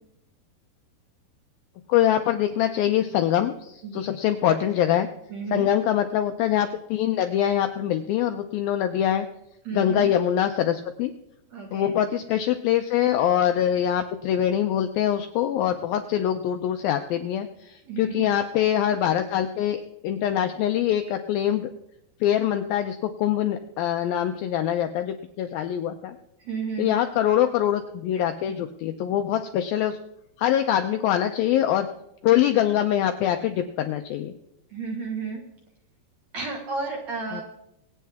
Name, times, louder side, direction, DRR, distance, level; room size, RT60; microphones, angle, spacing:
voice 1, 1.9-5.1 5.5-9.3 9.7-11.1 11.7-21.7 22.2-26.2 26.8-30.0 30.4-31.9 32.2-34.3 37.3-37.4, left 11 dB, 80° left, 7 dB, 2.1 m, -24 dB
voice 2, 3.8-4.3 5.3-5.7 9.6-10.1 11.5-12.0 17.9-18.3 26.4-27.0 34.7-35.4 36.3-37.4, right 4 dB, 55° right, 0 dB, 2.1 m, -32 dB
25.0 x 8.5 x 3.5 m, 0.81 s
omnidirectional pair, 4.9 m